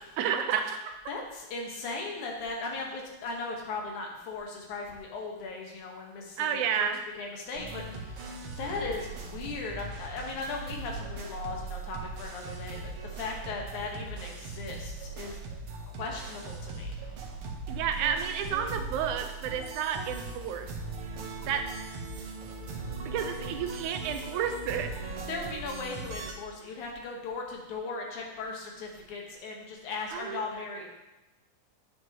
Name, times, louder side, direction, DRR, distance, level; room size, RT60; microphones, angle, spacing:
voice 1, 0.2-1.0 6.4-7.0 17.7-20.7 21.5-21.7 23.0-24.9 30.1-30.9, right 8 dB, 90° right, 7 dB, 2.2 m, -31 dB
voice 2, 1.1-15.4 15.9-16.9 25.3-30.9, left 3 dB, 80° left, 0 dB, 2.8 m, -38 dB
sound 1, 7.5-26.3, right 3 dB, 60° right, 1.5 m, -39 dB
9.3 x 7.7 x 3.0 m, 1.0 s
omnidirectional pair, 3.4 m